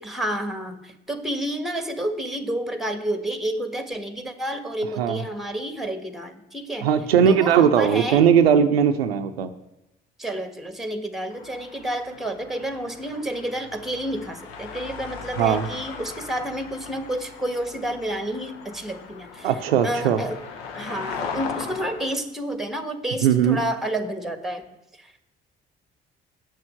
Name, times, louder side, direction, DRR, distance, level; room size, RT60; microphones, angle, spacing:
voice 1, 0.0-6.9 7.3-8.3 10.2-19.5 19.8-20.4 20.7-24.6 25.0-25.2, right 1 dB, ahead, 7 dB, 1.4 m, -30 dB
voice 2, 6.8-9.5 15.4-15.7 19.4-20.2 23.2-23.6, right 8 dB, 85° right, 8 dB, 0.5 m, -19 dB
sound 1, 11.3-22.2, left 5 dB, 80° left, 0.9 m, -38 dB
8.2 x 6.4 x 7.5 m, 0.93 s
figure-of-eight pair, 45°, 30 cm